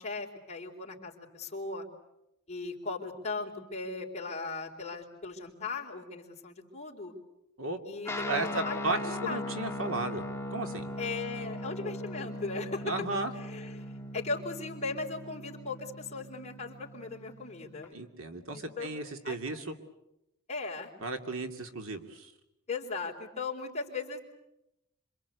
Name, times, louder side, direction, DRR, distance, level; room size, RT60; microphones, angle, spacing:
voice 1, 0.0-1.9 2.5-7.1 7.8-9.4 11.0-12.9 13.3-17.9 18.5-18.9 19.2-19.4 20.5-20.9 22.7-24.2, left 3 dB, 30° left, 0 dB, 3.9 m, -38 dB
Guitar, 8.0-17.9, left 1 dB, 10° left, 1.6 m, -39 dB
voice 2, 8.3-10.2 10.5-10.9 12.8-13.3 17.9-19.6 21.0-22.3, right 2 dB, 65° right, 6 dB, 2.6 m, -34 dB
27.0 x 25.0 x 8.4 m, 0.87 s
head